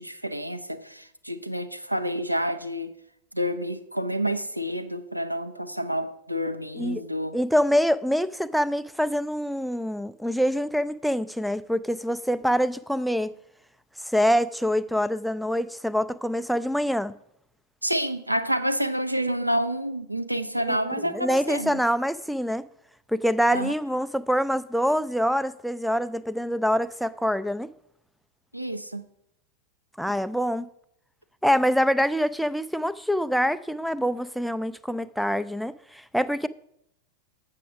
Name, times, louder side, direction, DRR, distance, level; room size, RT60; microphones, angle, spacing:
voice 1, 0.0-2.9 3.3-7.4 17.8-21.8 23.5-23.7 28.5-29.1, equal, 90° right, 0.6 m, -29 dB
voice 2, 7.3-13.3 14.1-17.1 20.7-20.8 21.1-22.7 23.1-27.7 30.0-30.7 31.4-36.5, equal, ahead, 0.3 m, -25 dB
7.7 x 5.9 x 6.2 m
figure-of-eight pair, 90°, 0 cm